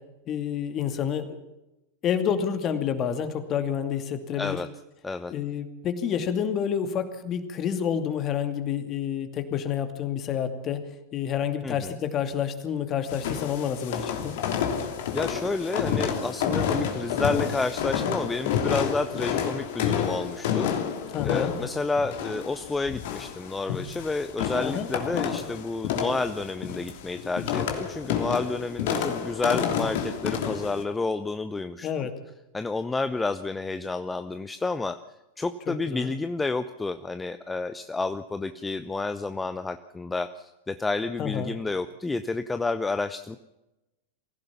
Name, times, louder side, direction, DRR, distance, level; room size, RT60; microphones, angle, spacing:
voice 1, 0.3-1.4 2.0-4.6 5.3-10.8 11.1-14.4 21.1-21.5 24.6-24.9 31.8-32.1 35.7-36.1 41.2-41.5, left 8 dB, 30° left, 8 dB, 2.5 m, -29 dB
voice 2, 11.6-11.9 15.1-20.7 21.2-32.1 32.5-35.0 35.4-43.4, left 3 dB, 10° left, 11 dB, 0.8 m, -30 dB
sound 1, 13.1-30.8, left 8 dB, 55° left, 2.9 m, -29 dB
23.5 x 16.0 x 7.2 m, 0.96 s
figure-of-eight pair, 90°, 0 cm